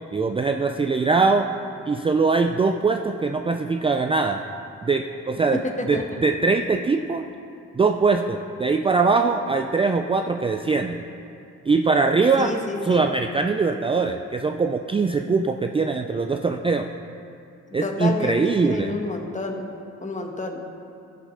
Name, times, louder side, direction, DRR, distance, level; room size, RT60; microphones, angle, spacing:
voice 1, 0.1-1.5 1.9-4.4 4.8-5.6 5.9-7.3 7.8-11.1 11.7-12.5 12.8-16.9 17.7-18.9, right 4 dB, 20° right, 5 dB, 0.4 m, -22 dB
voice 2, 5.5-6.2 12.4-13.0 17.8-19.7 20.0-20.6, left 2 dB, 25° left, 3 dB, 1.4 m, -29 dB
13.5 x 6.1 x 5.5 m, 2.6 s
cardioid pair, 90°, 30 cm